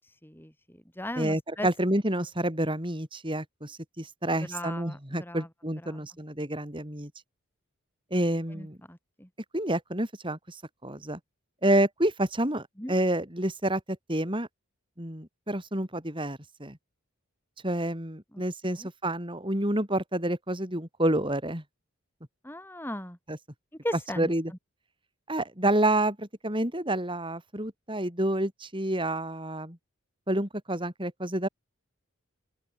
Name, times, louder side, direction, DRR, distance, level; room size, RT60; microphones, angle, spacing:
voice 1, 0.0-1.7 4.4-5.5 5.8-6.1 8.5-9.3 12.8-12.9 18.3-18.4 18.8-18.9 22.4-23.2 23.8-24.3, left 1 dB, 10° left, 7.6 m, -38 dB
voice 2, 1.2-7.1 8.1-8.8 9.5-11.2 11.6-14.5 15.0-16.8 17.6-21.6 23.3-23.4 24.2-24.5 25.3-29.8 30.3-31.5, right 1 dB, 25° right, 4.9 m, -29 dB
open air
head